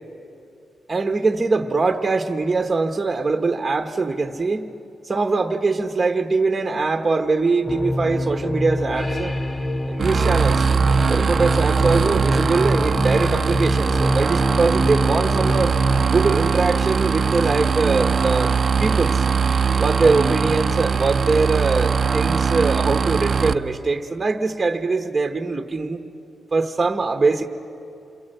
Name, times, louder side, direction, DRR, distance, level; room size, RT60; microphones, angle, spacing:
voice 1, 0.9-4.7 5.1-9.3 9.9-10.6 11.1-15.8 16.0-18.5 18.8-19.2 19.8-26.0 26.5-27.5, right 3 dB, 20° right, 5 dB, 1.1 m, -22 dB
sound 1, 7.7-16.1, left 1 dB, 10° left, 0.5 m, -26 dB
sound 2, 10.0-23.5, right 5 dB, 35° right, 0.7 m, -21 dB
28.5 x 22.5 x 7.8 m, 2.7 s
wide cardioid pair, 165°, 0 cm